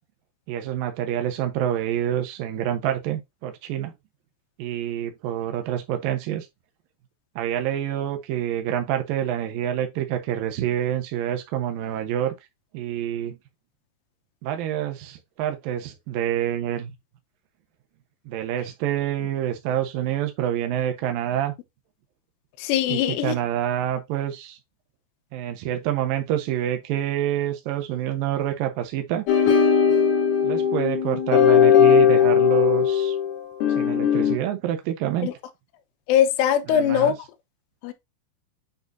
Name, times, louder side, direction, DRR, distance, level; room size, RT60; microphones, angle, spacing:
voice 1, 0.5-3.9 4.6-6.5 7.4-12.3 12.7-13.4 14.4-16.9 18.3-21.5 22.9-24.6 25.3-29.3 30.4-33.2 33.8-35.3 36.7-37.1, right 11 dB, 90° right, 2.0 m, -27 dB
voice 2, 22.6-23.3 35.2-35.3 36.1-37.2 37.8-37.9, left 9 dB, 85° left, 3.3 m, -21 dB
sound 1, 29.3-34.4, left 8 dB, 65° left, 2.8 m, -18 dB
8.8 x 4.1 x 2.6 m
omnidirectional pair, 5.7 m